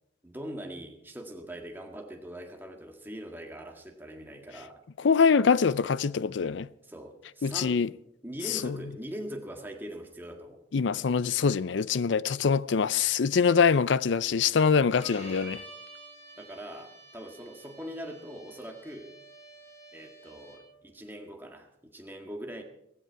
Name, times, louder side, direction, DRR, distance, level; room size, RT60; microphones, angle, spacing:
voice 1, 0.2-4.8 6.8-7.8 8.2-10.6 16.4-19.1 19.9-22.6, equal, 10° right, 1.7 m, -42 dB
voice 2, 5.0-6.7 7.4-7.9 8.6-8.8 10.7-15.6, left 6 dB, 65° left, 0.5 m, -24 dB
Bowed string instrument, 15.0-20.8, right 1 dB, 35° left, 6.1 m, -48 dB
16.5 x 15.5 x 4.7 m
head